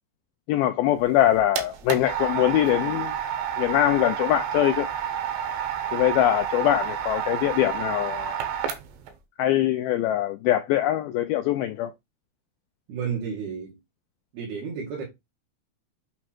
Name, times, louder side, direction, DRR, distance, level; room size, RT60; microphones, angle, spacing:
voice 1, 0.5-3.1 3.6-4.9 5.9-8.4 9.4-11.9, left 13 dB, 85° left, 2.2 m, -23 dB
sound 1, 1.0-9.1, right 9 dB, 90° right, 3.4 m, -30 dB
voice 2, 12.9-13.8 14.3-15.0, right 6 dB, 70° right, 4.1 m, -31 dB
8.5 x 3.1 x 4.3 m
omnidirectional pair, 4.9 m